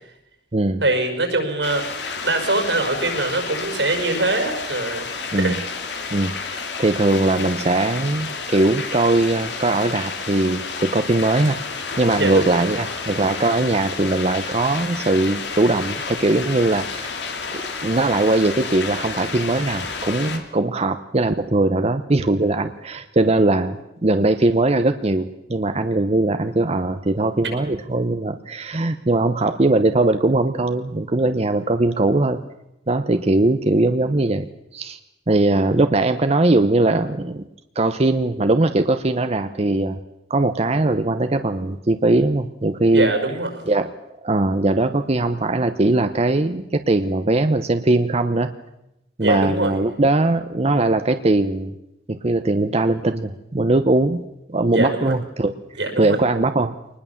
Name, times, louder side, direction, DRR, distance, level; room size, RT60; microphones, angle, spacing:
voice 1, 0.8-1.9 2.2-5.1 5.4-5.6 12.1-12.6 42.9-43.5 49.2-49.7 54.7-55.1 55.8-56.2, right 2 dB, 90° right, 5 dB, 5.6 m, -22 dB
sound 1, 1.6-20.4, left 4 dB, 90° left, 2.8 m, -30 dB
voice 2, 6.1-17.2 17.5-32.4 32.9-34.5 34.7-35.0 35.3-37.4 37.8-40.0 40.3-43.1 43.7-43.9 44.2-48.5 49.2-51.7 52.1-54.2 54.5-55.5 56.0-56.7, right 2 dB, 35° right, 9 dB, 0.8 m, -20 dB
23.5 x 20.0 x 7.2 m, 0.87 s
head